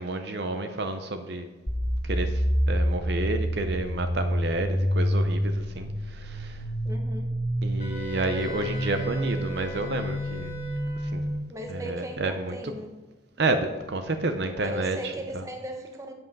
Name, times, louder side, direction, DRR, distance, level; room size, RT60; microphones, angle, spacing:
voice 1, 0.0-1.5 2.0-6.6 7.6-10.6 11.1-11.3 11.7-12.6 13.4-15.4, right 2 dB, 60° right, 7 dB, 0.6 m, -30 dB
sound 1, 1.7-11.4, equal, 15° left, 2.6 m, -28 dB
voice 2, 6.8-7.3 11.5-13.0 14.6-16.1, right 1 dB, 15° right, 3 dB, 1.0 m, -37 dB
Wind instrument woodwind instrument, 7.8-11.3, right 2 dB, 30° left, 1.6 m, -40 dB
8.1 x 7.6 x 5.3 m, 1.2 s
head